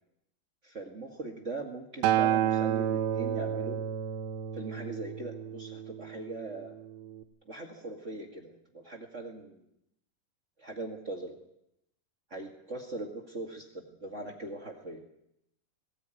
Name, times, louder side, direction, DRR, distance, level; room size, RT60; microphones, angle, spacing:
voice 1, 0.6-3.8 4.5-6.8 7.4-9.6 10.6-11.3 12.3-15.0, right 2 dB, 50° right, 2 dB, 0.8 m, -40 dB
Acoustic guitar, 2.0-6.3 7.2-7.3, right 10 dB, 85° right, 3.3 m, -30 dB
18.5 x 17.5 x 9.1 m, 0.80 s
omnidirectional pair, 4.9 m